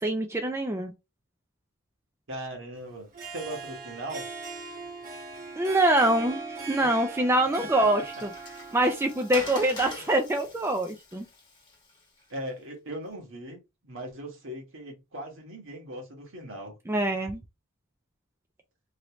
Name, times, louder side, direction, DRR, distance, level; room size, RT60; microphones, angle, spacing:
voice 1, 0.0-0.9 5.6-8.3 8.7-11.3 16.9-17.4, right 1 dB, 10° right, 0.4 m, -25 dB
voice 2, 2.3-4.3 6.8-6.9 7.8-7.9 12.3-16.8, right 1 dB, 60° right, 1.4 m, -39 dB
Harp, 3.0-10.3, right 4 dB, 40° right, 1.2 m, -41 dB
Water, 7.1-12.5, left 2 dB, 20° left, 1.1 m, -44 dB
3.1 x 2.6 x 2.9 m
head